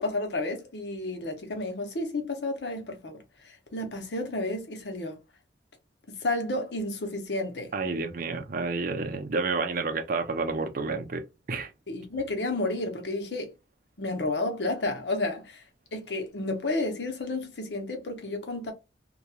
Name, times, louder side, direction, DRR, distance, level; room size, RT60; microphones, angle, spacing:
voice 1, 0.0-5.2 6.1-7.7 11.9-13.5 14.0-15.6 15.9-18.7, left 2 dB, 70° left, 0.8 m, -31 dB
voice 2, 7.7-11.7, right 4 dB, 50° right, 0.5 m, -30 dB
2.9 x 2.3 x 2.3 m
head